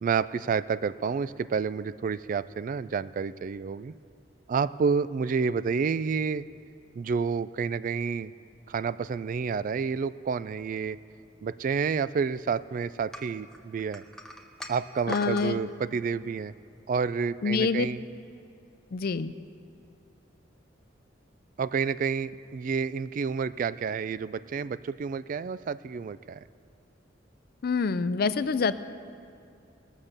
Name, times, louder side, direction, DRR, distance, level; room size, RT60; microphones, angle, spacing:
voice 1, 0.0-3.9 4.5-6.4 6.9-8.3 8.7-11.0 11.4-14.0 14.7-16.5 16.9-18.0 21.6-26.4, right 5 dB, 45° right, 16 dB, 0.3 m, -29 dB
sound 1, 13.1-15.5, equal, 5° left, 0.8 m, -41 dB
voice 2, 15.1-15.6 17.4-17.9 18.9-19.3 27.6-28.7, left 4 dB, 55° left, 14 dB, 0.4 m, -26 dB
19.0 x 7.3 x 6.6 m, 2.5 s
head